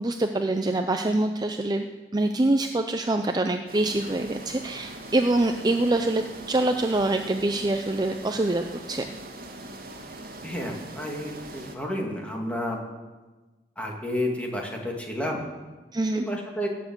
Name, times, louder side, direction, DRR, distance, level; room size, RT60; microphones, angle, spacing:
voice 1, 0.0-1.9 2.1-9.0 15.9-16.2, right 2 dB, 20° right, 6 dB, 0.5 m, -25 dB
sound 1, 3.7-11.8, right 1 dB, 55° right, 2.0 m, -41 dB
voice 2, 10.4-12.8 13.8-15.5 16.1-16.7, left 1 dB, 5° left, 0 dB, 2.1 m, -31 dB
18.0 x 7.3 x 7.9 m, 1.3 s
head